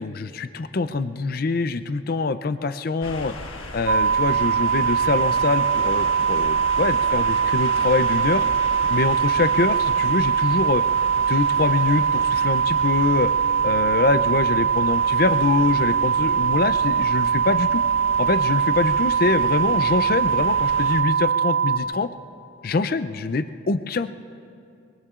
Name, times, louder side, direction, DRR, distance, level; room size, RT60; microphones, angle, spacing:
voice 1, 0.0-3.3 3.7-8.4 8.9-10.8 11.2-13.3 13.6-17.8 18.2-22.1 22.6-24.1, left 3 dB, 45° left, 11 dB, 0.4 m, -24 dB
sound 1, 3.0-21.0, left 2 dB, 90° left, 1.4 m, -37 dB
sound 2, 3.9-21.8, right 7 dB, 65° right, 0.5 m, -21 dB
25.0 x 23.0 x 2.4 m, 2.5 s
head